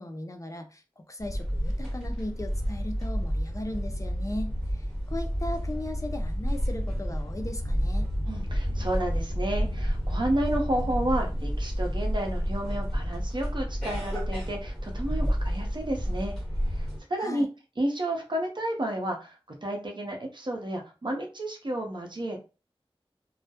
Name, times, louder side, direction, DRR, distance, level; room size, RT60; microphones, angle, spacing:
voice 1, 0.0-8.1 17.2-17.5, left 1 dB, 35° left, 6 dB, 0.4 m, -37 dB
sound 1, 1.2-17.0, equal, 10° left, 1.2 m, -30 dB
voice 2, 8.2-16.3 16.6-17.5 17.8-22.4, right 1 dB, 50° right, 2 dB, 0.7 m, -31 dB
2.2 x 2.0 x 2.8 m, 0.32 s
wide cardioid pair, 60°, 10 cm